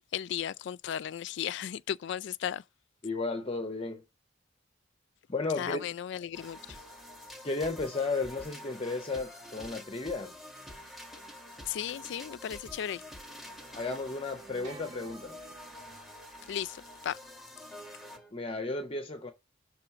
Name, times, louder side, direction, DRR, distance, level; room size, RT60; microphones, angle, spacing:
voice 1, 0.0-2.6 5.6-6.8 11.7-13.0 16.5-17.2, left 9 dB, 60° left, 0.3 m, -35 dB
voice 2, 3.0-4.0 5.3-5.8 7.4-10.3 13.7-15.3 18.3-19.3, left 3 dB, 30° left, 0.6 m, -34 dB
sound 1, 6.3-18.3, left 1 dB, ahead, 1.5 m, -48 dB
sound 2, 12.4-16.0, right 5 dB, 45° right, 2.7 m, -54 dB
6.0 x 3.1 x 5.7 m
head